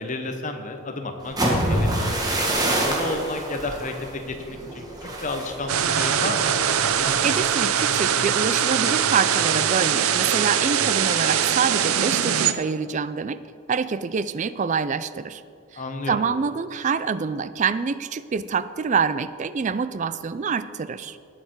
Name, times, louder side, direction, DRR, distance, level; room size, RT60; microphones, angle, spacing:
voice 1, 0.0-2.2 2.6-6.5 15.8-16.2, left 2 dB, 35° left, 5 dB, 1.0 m, -32 dB
sound 1, 1.2-9.1 9.4-9.7 10.1-10.5, right 1 dB, 20° right, 1.5 m, -28 dB
sound 2, 5.7-12.5, right 8 dB, 85° right, 0.6 m, -22 dB
voice 2, 7.2-13.4 13.7-15.4 15.7-21.2, right 5 dB, 35° right, 14 dB, 0.3 m, -26 dB
18.5 x 6.8 x 4.6 m, 2.4 s
head